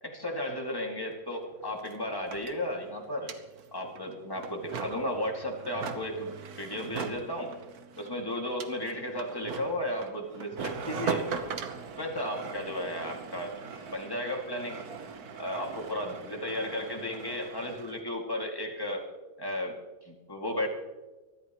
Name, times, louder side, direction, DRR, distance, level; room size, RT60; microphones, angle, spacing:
voice 1, 0.0-3.3 3.7-7.5 8.0-11.3 12.0-14.8 15.4-19.1 19.4-19.8 20.0-20.7, left 1 dB, 10° left, 0 dB, 2.3 m, -34 dB
sound 1, 1.1-1.2 1.4-18.0, right 5 dB, 60° right, 1.5 m, -40 dB
24.5 x 13.0 x 3.1 m, 1.2 s
omnidirectional pair, 1.9 m